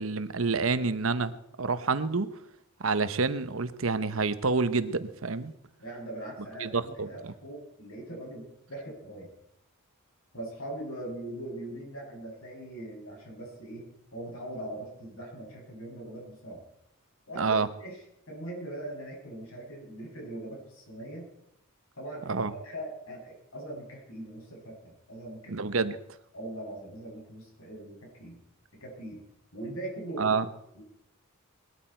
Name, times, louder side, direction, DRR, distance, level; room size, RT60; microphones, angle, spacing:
voice 1, 0.0-2.3 2.8-5.5 6.6-7.1 17.4-17.7 22.3-22.5 25.5-26.0 30.2-30.4, right 4 dB, 70° right, 12 dB, 1.0 m, -28 dB
voice 2, 5.8-9.3 10.3-16.6 17.3-21.3 22.0-24.8 25.1-25.5 26.3-28.4 28.8-29.2 29.5-30.4 30.7-30.8, right 1 dB, 85° left, -1 dB, 7.5 m, -41 dB
20.5 x 13.0 x 4.5 m, 0.78 s
head